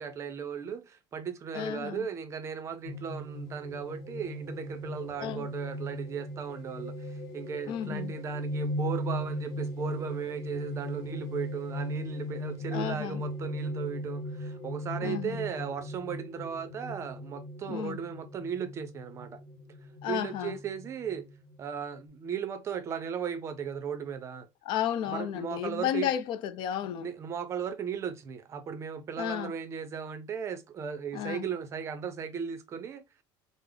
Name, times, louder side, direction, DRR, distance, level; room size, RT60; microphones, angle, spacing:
voice 1, 0.0-19.4 20.1-21.3 21.6-24.5 25.1-26.1 27.0-33.0, right 7 dB, 30° right, 0.5 m, -36 dB
voice 2, 1.5-2.1 5.2-5.5 7.7-8.1 12.7-13.2 15.0-15.4 17.7-18.0 20.0-20.6 24.6-27.1 29.2-29.5 31.1-31.5, left 10 dB, 55° left, 0.5 m, -33 dB
sound 1, 2.9-22.0, equal, 40° left, 1.0 m, -38 dB
3.3 x 2.0 x 3.6 m
cardioid pair, 155°, 10 cm